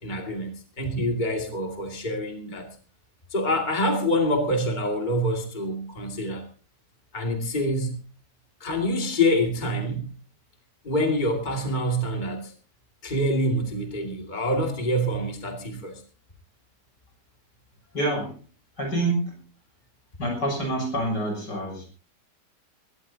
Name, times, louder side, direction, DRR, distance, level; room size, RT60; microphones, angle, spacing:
voice 1, 0.0-2.7 3.3-6.4 7.1-8.0 8.6-10.1 10.8-12.5 13.0-16.0, equal, 25° left, 2 dB, 2.5 m, -26 dB
voice 2, 17.9-18.3 18.8-19.4 20.2-21.9, right 1 dB, 85° left, 1 dB, 7.6 m, -27 dB
21.0 x 18.0 x 2.8 m, 0.37 s
omnidirectional pair, 1.9 m